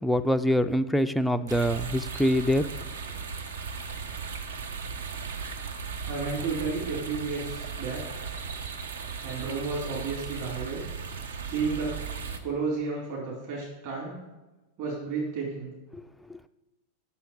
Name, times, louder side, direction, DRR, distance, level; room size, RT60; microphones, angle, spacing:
voice 1, 0.0-2.7 15.9-16.0 16.3-16.5, equal, 5° left, 8 dB, 0.3 m, -25 dB
sound 1, 1.5-12.4, right 5 dB, 65° right, 0.8 m, -36 dB
voice 2, 6.1-8.2 9.2-10.8 11.4-11.9 12.4-14.2 14.8-15.7, right 4 dB, 45° right, -4 dB, 3.1 m, -32 dB
6.3 x 5.7 x 6.9 m, 1.1 s
figure-of-eight pair, 90°, 0 cm